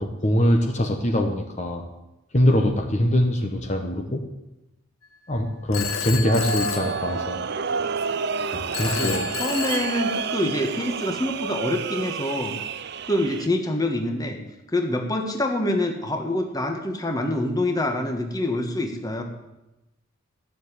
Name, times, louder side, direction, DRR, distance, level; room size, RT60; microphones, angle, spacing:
voice 1, 0.0-1.8 2.3-4.2 5.3-7.4 8.5-9.3, left 1 dB, 30° left, 2 dB, 1.3 m, -23 dB
Telephone, 5.7-7.7 8.7-10.7, left 7 dB, 85° left, 1.1 m, -31 dB
sound 1, 6.2-13.5, right 5 dB, 50° right, 0.6 m, -29 dB
voice 2, 8.8-12.5 13.0-14.4 14.7-19.2, left 1 dB, 15° left, 4 dB, 1.5 m, -26 dB
14.5 x 7.2 x 9.9 m, 0.96 s
head